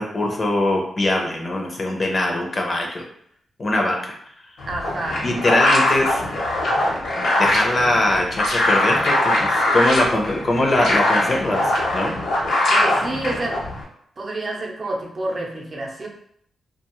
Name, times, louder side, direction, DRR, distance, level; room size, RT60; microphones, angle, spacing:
voice 1, 0.0-3.0 3.6-4.2 5.2-6.2 7.4-11.6 11.9-12.1, left 1 dB, 45° left, 1 dB, 0.6 m, -22 dB
sound 1, 4.6-13.8, left 1 dB, 80° left, 0.9 m, -21 dB
voice 2, 4.7-5.3 12.7-13.6 14.2-16.1, right 2 dB, 45° right, 0 dB, 0.6 m, -28 dB
2.4 x 2.3 x 3.0 m, 0.66 s
cardioid pair, 75°, 0 cm